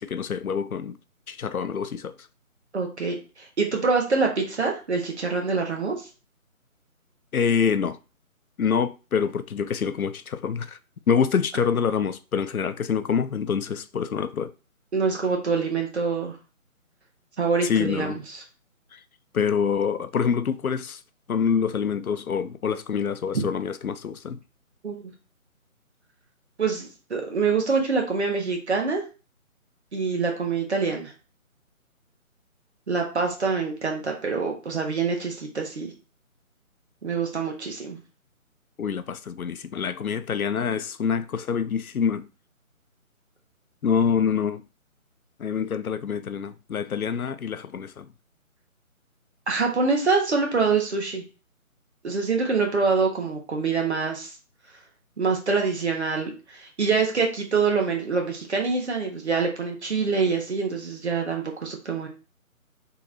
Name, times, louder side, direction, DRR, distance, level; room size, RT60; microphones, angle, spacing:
voice 1, 0.0-1.0 1.3-2.1 7.3-8.0 8.6-10.8 11.1-14.5 17.6-18.2 18.9-19.0 19.3-21.0 21.3-24.4 38.8-42.3 43.8-44.6 45.4-48.1, left 7 dB, 80° left, 0.6 m, -26 dB
voice 2, 2.7-6.0 14.9-16.4 17.4-18.4 24.8-25.1 26.6-29.0 29.9-31.1 32.9-35.9 37.0-38.0 49.5-51.2 52.0-54.3 55.2-62.1, right 4 dB, 50° right, 1.6 m, -25 dB
4.3 x 3.5 x 2.9 m
figure-of-eight pair, 155°, 43 cm